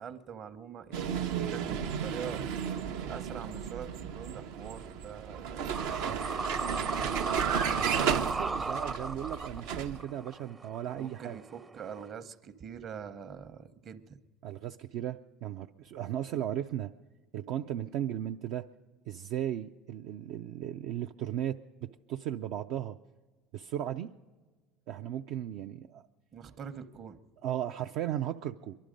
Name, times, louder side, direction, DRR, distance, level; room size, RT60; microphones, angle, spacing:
voice 1, 0.0-2.4 3.1-7.4 10.9-14.2 26.3-27.2, right 7 dB, 45° right, 11 dB, 1.0 m, -44 dB
Vehicle, 0.9-10.0, right 8 dB, 85° right, 0.8 m, -34 dB
sound 1, 5.7-12.1, right 3 dB, 20° right, 0.5 m, -36 dB
voice 2, 7.8-11.4 14.4-16.9 17.3-18.7 19.1-23.0 23.5-24.1 24.9-26.0 27.4-28.8, right 11 dB, 65° right, 6 dB, 0.4 m, -36 dB
23.0 x 11.5 x 5.2 m, 1.3 s
supercardioid pair, 100°, 0 cm